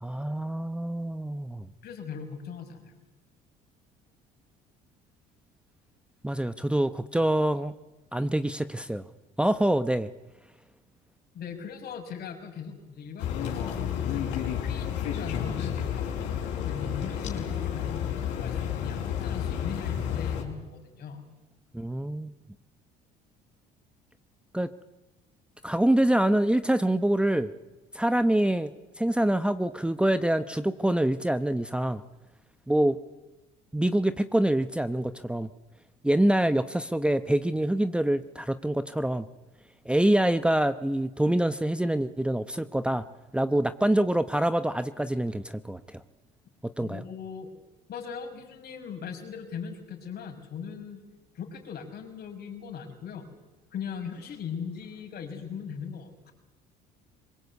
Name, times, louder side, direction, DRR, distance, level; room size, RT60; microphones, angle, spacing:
voice 1, 0.0-1.7 6.2-7.7 8.1-9.0 9.4-10.1 21.7-22.3 24.5-24.7 25.6-27.5 27.9-28.7 29.0-32.0 32.7-33.0 33.7-35.5 36.0-39.3 39.8-43.0 43.3-46.0 46.8-47.0, right 1 dB, 5° right, 11 dB, 1.0 m, -25 dB
voice 2, 1.8-2.9 11.3-14.3 14.6-21.3 46.8-47.5 47.9-51.0 51.3-53.3 53.7-56.3, left 7 dB, 60° left, 3 dB, 5.9 m, -39 dB
sound 1, 13.2-20.4, left 9 dB, 80° left, 5.0 m, -31 dB
23.5 x 21.0 x 8.4 m, 1.1 s
supercardioid pair, 85°, 19 cm